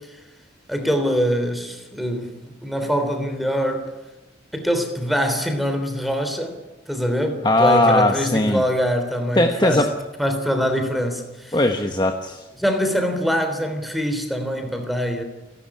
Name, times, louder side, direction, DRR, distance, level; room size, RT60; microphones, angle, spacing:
voice 1, 0.7-3.9 4.5-6.6 6.9-9.8 10.2-11.6 12.6-15.2, equal, ahead, 6 dB, 3.3 m, -23 dB
voice 2, 7.4-8.6 9.3-9.9 11.5-12.4, left 1 dB, 25° left, 5 dB, 1.2 m, -18 dB
30.0 x 12.5 x 10.0 m, 1.1 s
head